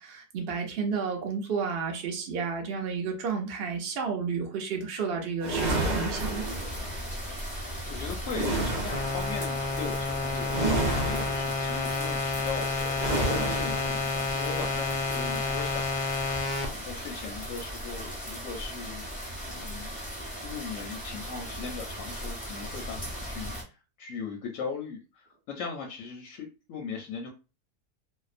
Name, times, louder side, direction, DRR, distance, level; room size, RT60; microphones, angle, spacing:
voice 1, 0.0-6.4, right 5 dB, 70° right, 0.5 m, -31 dB
sound 1, 5.4-7.0 8.3-9.3 10.5-11.6 13.0-13.9, right 2 dB, 35° right, 0.7 m, -30 dB
sound 2, 6.1-23.6, equal, 10° left, 0.3 m, -37 dB
voice 2, 7.5-19.1 19.5-20.0 20.4-27.3, left 5 dB, 65° left, 0.8 m, -39 dB
sound 3, 8.9-16.7, left 3 dB, 85° left, 1.2 m, -30 dB
2.7 x 2.0 x 2.4 m
omnidirectional pair, 1.8 m